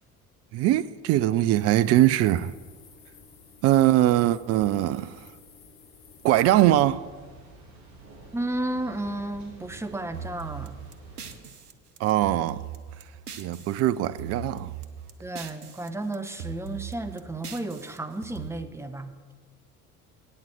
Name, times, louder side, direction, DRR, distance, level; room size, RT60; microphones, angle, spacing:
voice 1, 0.5-2.5 3.6-5.3 6.2-7.0 12.0-12.6 13.4-14.7, right 14 dB, 35° right, 0.4 m, -22 dB
sound 1, 1.5-6.5, left 5 dB, 50° left, 1.5 m, -53 dB
Thunder, 6.3-11.4, right 2 dB, 50° right, 2.5 m, -49 dB
voice 2, 8.3-10.8 15.2-19.2, right 1 dB, 5° right, 0.7 m, -33 dB
sound 2, 10.1-13.8 14.0-15.9 16.1-18.5, right 6 dB, 90° right, 0.7 m, -40 dB
8.9 x 6.5 x 7.5 m
figure-of-eight pair, 60°, 44 cm